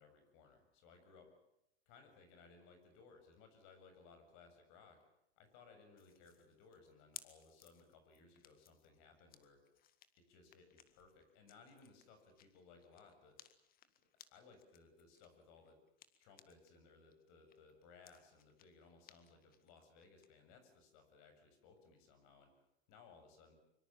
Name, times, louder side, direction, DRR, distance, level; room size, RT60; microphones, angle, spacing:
voice 1, 0.0-1.3 1.9-5.0 5.4-9.6 10.2-13.6 14.3-15.8 16.2-22.5 22.9-23.5, left 4 dB, 45° left, 7 dB, 7.4 m, -63 dB
sound 1, 6.0-16.8 17.1-20.3, left 10 dB, 30° left, 1.8 m, -62 dB
24.5 x 24.0 x 7.4 m, 0.81 s
hypercardioid pair, 115°, 32 cm